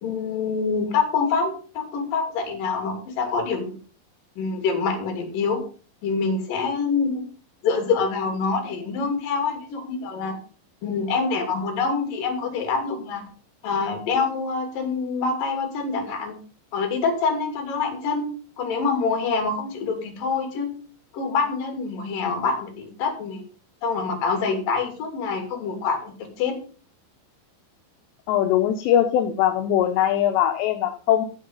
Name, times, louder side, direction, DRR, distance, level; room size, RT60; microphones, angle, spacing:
voice 1, 0.0-3.7 4.4-5.6 6.0-7.2 7.6-10.4 10.8-13.2 13.6-16.4 16.7-18.3 18.6-20.7 21.1-23.4 23.8-26.5, left 4 dB, 50° left, 5 dB, 3.9 m, -25 dB
voice 2, 28.3-31.3, left 11 dB, 75° left, 7 dB, 2.8 m, -21 dB
14.5 x 7.0 x 5.4 m, 0.40 s
omnidirectional pair, 5.5 m